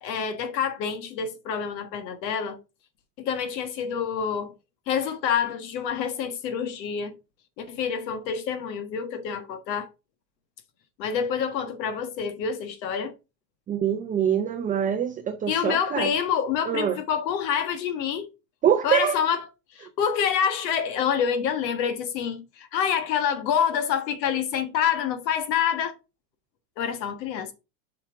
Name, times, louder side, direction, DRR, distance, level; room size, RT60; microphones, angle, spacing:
voice 1, 0.0-2.6 3.2-4.5 4.9-7.2 7.6-9.9 11.0-13.1 15.5-18.3 18.8-19.4 19.7-25.9 26.8-27.5, left 7 dB, 80° left, 1.5 m, -27 dB
voice 2, 13.7-16.1 16.7-17.0 18.6-19.2, right 8 dB, 15° right, 0.4 m, -24 dB
7.3 x 5.8 x 3.4 m
supercardioid pair, 125°, 50 cm